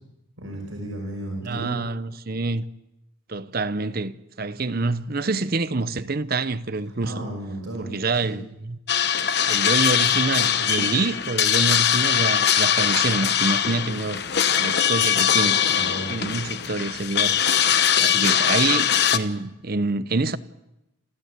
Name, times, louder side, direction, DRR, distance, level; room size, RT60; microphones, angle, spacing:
voice 1, 0.4-1.8 7.0-7.9 8.2-8.4 15.7-16.1, right 1 dB, 70° right, 5.6 m, -33 dB
voice 2, 1.4-2.6 3.3-7.2 7.8-8.8 9.5-14.2 14.6-15.6 16.1-17.4 18.0-20.4, right 3 dB, 45° right, 0.8 m, -26 dB
sound 1, 8.9-19.2, left 9 dB, 50° left, 1.0 m, -21 dB
29.0 x 13.5 x 8.3 m
head